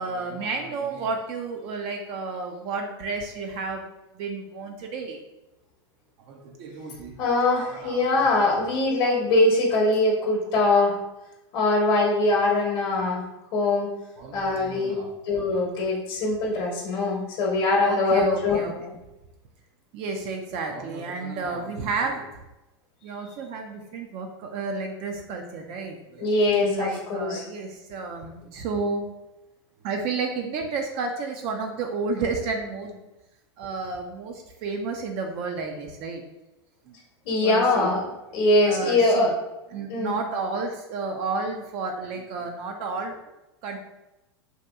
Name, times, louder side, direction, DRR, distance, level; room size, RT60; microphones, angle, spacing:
voice 1, 0.0-3.9 4.1-5.2 6.3-7.2 7.5-8.8 14.2-15.2 17.8-19.0 19.9-22.3 23.0-29.1 29.8-33.0 33.6-36.2 36.9-37.0 37.4-38.2 38.6-39.3 39.7-43.2 43.6-43.8, right 4 dB, 45° right, 3 dB, 0.4 m, -32 dB
voice 2, 7.2-11.0 11.5-13.2 13.5-13.9 14.3-14.9 15.3-18.6 26.2-27.4 37.3-38.1 38.3-39.3 39.9-40.1, left 2 dB, 55° left, -2 dB, 0.8 m, -22 dB
2.7 x 2.6 x 2.2 m, 0.99 s
hypercardioid pair, 100°, 14 cm